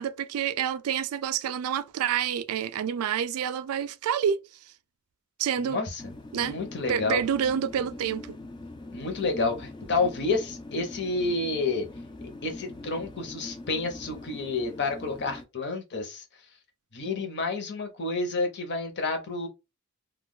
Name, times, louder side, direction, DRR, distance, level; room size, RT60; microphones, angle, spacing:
voice 1, 0.0-4.4 5.4-5.8 6.3-6.5 6.9-8.4, right 8 dB, 75° right, 0.3 m, -28 dB
voice 2, 5.6-6.0 6.4-7.2 8.9-11.9 12.4-16.2 16.9-19.5, left 3 dB, 55° left, 0.8 m, -29 dB
sound 1, 6.0-15.4, left 2 dB, 20° left, 0.4 m, -42 dB
2.3 x 2.2 x 3.7 m
head